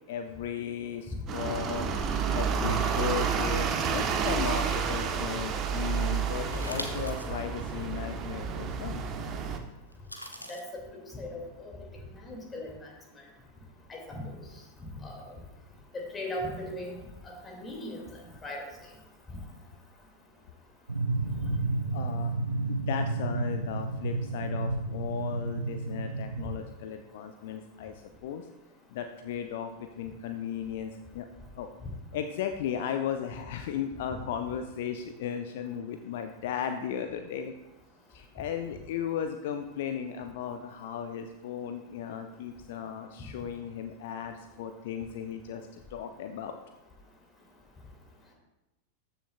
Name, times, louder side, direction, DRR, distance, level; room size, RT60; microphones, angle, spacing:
voice 1, 0.1-1.9 2.3-9.0 21.9-22.4 22.7-28.5 28.9-31.3 31.6-31.7 32.1-37.5 38.1-46.5, left 8 dB, 55° left, 7 dB, 0.5 m, -36 dB
sound 1, 1.3-9.6, right 6 dB, 30° right, 0.8 m, -30 dB
sound 2, 6.4-7.3 7.8-7.9 9.9-10.6, equal, 85° left, 0.9 m, -41 dB
voice 2, 10.5-10.8 11.1-11.8 12.1-12.9 13.9-14.3 15.0-15.2 15.9-17.0 17.2-18.7 19.3-19.4, left 1 dB, 15° left, 0 dB, 2.2 m, -38 dB
sound 3, 20.9-26.6, right 2 dB, 80° right, 0.6 m, -31 dB
14.0 x 6.5 x 2.3 m, 1.0 s
figure-of-eight pair, 90°, 0 cm